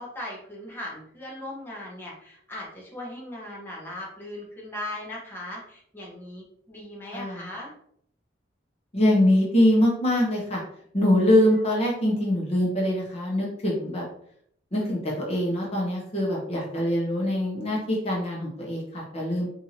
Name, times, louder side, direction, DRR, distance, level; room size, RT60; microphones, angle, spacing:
voice 1, 0.0-7.7, left 1 dB, 10° left, -5 dB, 1.0 m, -38 dB
voice 2, 7.1-7.5 8.9-10.6 10.9-14.0 14.7-19.5, left 1 dB, 35° left, -3 dB, 1.0 m, -23 dB
4.4 x 2.7 x 2.8 m, 0.67 s
head